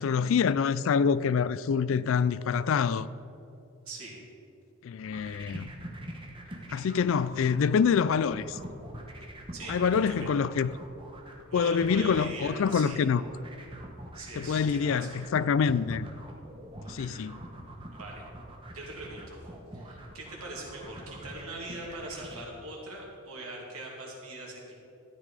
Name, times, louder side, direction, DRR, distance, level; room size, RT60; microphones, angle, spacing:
voice 1, 0.0-3.1 4.8-5.7 6.7-8.6 9.7-10.7 11.5-13.2 14.4-16.1 16.9-17.4, left 6 dB, 65° left, 0.3 m, -26 dB
voice 2, 3.8-4.2 9.5-9.8 10.1-10.3 11.5-13.1 14.1-15.2 16.8-16.9 17.9-18.2 18.7-19.4 19.7-24.7, right 2 dB, 80° right, 2.7 m, -41 dB
sound 1, 5.0-22.4, right 1 dB, 25° right, 1.2 m, -44 dB
13.5 x 9.4 x 4.9 m
head